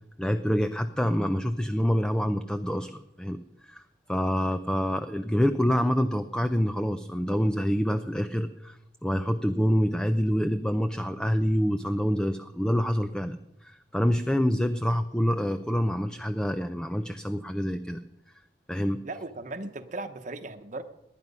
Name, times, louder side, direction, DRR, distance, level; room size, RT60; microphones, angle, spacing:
voice 1, 0.2-3.8 4.1-18.0 18.7-19.0, equal, 5° left, 10 dB, 0.5 m, -27 dB
voice 2, 19.0-20.8, right 2 dB, 45° right, 8 dB, 1.0 m, -37 dB
19.0 x 11.0 x 5.4 m, 0.87 s
head